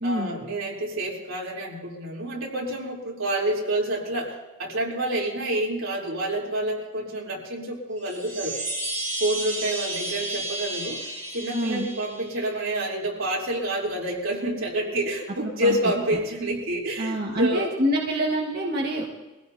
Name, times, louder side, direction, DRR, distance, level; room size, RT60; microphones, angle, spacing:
voice 1, 0.0-8.6 9.2-11.0 11.3-17.7, right 1 dB, 80° right, -3 dB, 3.3 m, -28 dB
Chime, 8.0-12.7, right 2 dB, 35° right, 2.0 m, -32 dB
voice 2, 11.5-11.9 15.4-15.8 17.0-19.0, equal, 50° right, -3 dB, 1.5 m, -26 dB
23.5 x 16.0 x 2.8 m, 1.1 s
head